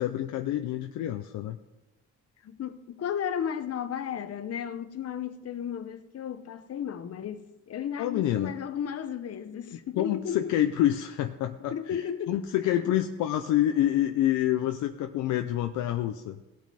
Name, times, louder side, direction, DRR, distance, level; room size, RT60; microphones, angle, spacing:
voice 1, 0.0-1.6 8.0-8.5 10.0-16.4, left 12 dB, 85° left, 0.6 m, -27 dB
voice 2, 2.4-10.5 11.7-12.8, left 8 dB, 55° left, 0.9 m, -34 dB
17.0 x 6.1 x 4.2 m
cardioid pair, 90°, 30 cm